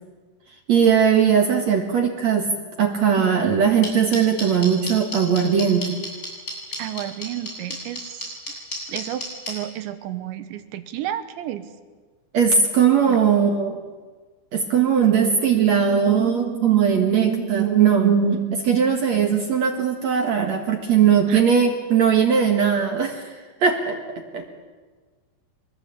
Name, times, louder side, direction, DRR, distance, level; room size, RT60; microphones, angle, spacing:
voice 1, 0.7-2.5 2.8-6.0 12.3-13.8 14.5-24.4, right 7 dB, 55° right, 3 dB, 2.0 m, -19 dB
voice 2, 3.1-3.5 6.8-8.3 8.9-11.7 13.1-13.2 21.3-21.4, right 12 dB, 80° right, 10 dB, 3.4 m, -32 dB
sound 1, 3.8-9.5, left 2 dB, 20° left, 7.6 m, -30 dB
24.0 x 21.5 x 8.4 m, 1.4 s
omnidirectional pair, 5.2 m